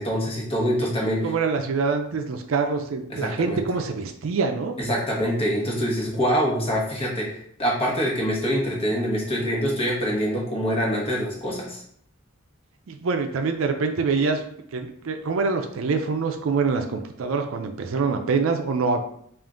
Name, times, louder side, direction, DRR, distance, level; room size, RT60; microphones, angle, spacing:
voice 1, 0.0-1.3 3.1-3.6 4.8-11.8, equal, 25° left, -3 dB, 1.1 m, -25 dB
voice 2, 1.2-4.7 12.9-14.4 14.7-19.0, right 4 dB, 70° right, 6 dB, 0.4 m, -25 dB
3.6 x 2.5 x 3.7 m, 0.66 s
head